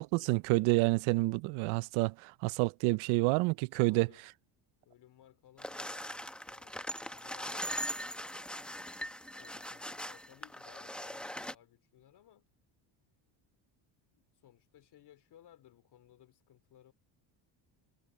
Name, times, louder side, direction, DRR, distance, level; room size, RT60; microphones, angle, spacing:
voice 1, 0.0-4.1, right 23 dB, 80° right, 0.6 m, -29 dB
voice 2, 3.8-4.2 4.8-6.8 7.1-8.7 9.3-12.5 14.2-16.9, left 11 dB, 55° left, 2.9 m, -61 dB
sound 1, 5.6-11.6, equal, ahead, 0.9 m, -41 dB
cardioid pair, 120°, 48 cm